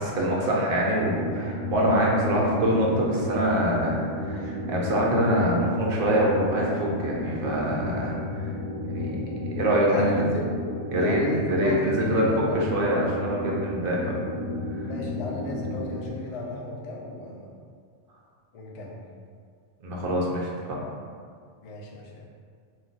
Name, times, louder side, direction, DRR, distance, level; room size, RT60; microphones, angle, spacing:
voice 1, 0.0-8.5 8.8-10.3 10.9-11.2 11.5-14.2 19.8-20.8, equal, 60° right, -3 dB, 0.7 m, -25 dB
sound 1, 1.0-16.1, left 1 dB, 5° right, 1.1 m, -32 dB
voice 2, 9.9-10.5 11.0-12.6 14.8-17.5 18.5-19.0 21.6-22.2, left 3 dB, 65° left, -2 dB, 0.3 m, -34 dB
2.4 x 2.3 x 3.8 m, 2.1 s
omnidirectional pair, 1.2 m